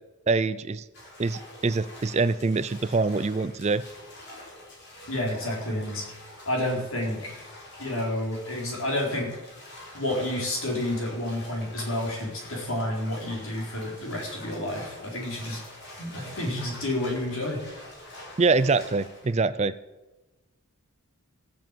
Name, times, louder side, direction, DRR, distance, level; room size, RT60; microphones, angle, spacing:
voice 1, 0.3-0.8 1.2-3.8 18.4-19.7, right 3 dB, 30° right, 15 dB, 0.4 m, -24 dB
sound 1, 0.9-19.4, left 1 dB, 50° left, 4.3 m, -46 dB
voice 2, 5.1-6.1 6.5-7.4 7.8-9.4 9.9-15.6 16.0-17.6, left 1 dB, 75° left, -1 dB, 4.4 m, -30 dB
16.0 x 7.2 x 7.6 m, 1.1 s
head